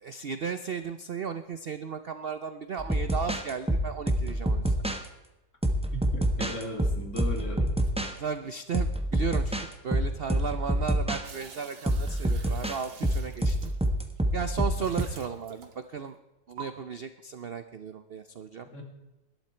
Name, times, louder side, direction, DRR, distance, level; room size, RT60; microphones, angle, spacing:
voice 1, 0.0-4.8 8.2-9.6 9.8-13.7 14.3-16.2 16.5-18.7, right 6 dB, 55° right, 10 dB, 0.6 m, -35 dB
sound 1, 2.8-5.0 5.6-8.1 8.7-9.7 9.9-11.2 11.9-15.0, right 1 dB, 5° right, 0.9 m, -27 dB
voice 2, 5.9-7.8 18.7-18.8, left 1 dB, 45° left, 2 dB, 3.0 m, -37 dB
sound 2, 11.2-14.2 14.7-16.0 16.6-16.7, right 7 dB, 85° right, 2.1 m, -48 dB
19.0 x 12.5 x 4.4 m, 1.0 s
omnidirectional pair, 1.8 m